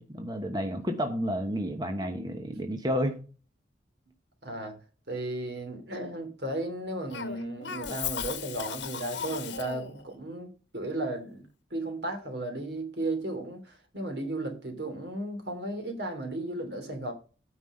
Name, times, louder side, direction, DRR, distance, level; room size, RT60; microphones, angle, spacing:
voice 1, 0.0-3.2, equal, 25° right, 1.1 m, -31 dB
voice 2, 4.4-4.8 5.1-17.1, right 1 dB, 65° right, 2.9 m, -35 dB
Cough, 7.1-10.0, left 7 dB, 80° left, 1.2 m, -36 dB
9.5 x 5.4 x 6.5 m
head